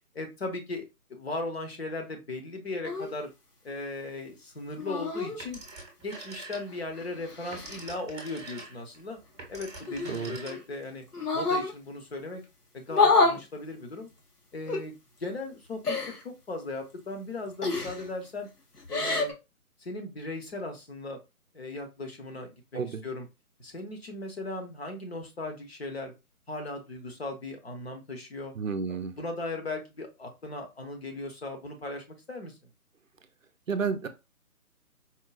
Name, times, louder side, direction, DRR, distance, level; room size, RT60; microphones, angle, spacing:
voice 1, 0.1-3.3 3.6-5.6 6.0-9.2 9.5-11.0 11.3-12.4 12.7-14.1 14.5-18.5 18.9-19.3 19.8-21.2 21.5-23.3 23.6-26.1 26.5-28.5 28.9-32.6, left 2 dB, 45° left, 4 dB, 0.8 m, -37 dB
sound 1, 2.8-3.1 4.8-5.4 6.7-7.8 9.9-10.6 11.1-11.7 12.9-13.4 14.7-14.8 15.8-16.2 17.6-18.1 18.8-19.3, left 3 dB, 85° left, 1.1 m, -27 dB
Telephone, 5.4-6.9 7.3-10.9, right 3 dB, 20° right, 0.8 m, -45 dB
voice 2, 28.6-29.1 33.7-34.1, right 5 dB, 60° right, 10 dB, 0.5 m, -30 dB
4.4 x 2.2 x 2.3 m, 0.25 s
figure-of-eight pair, 150°, 45 cm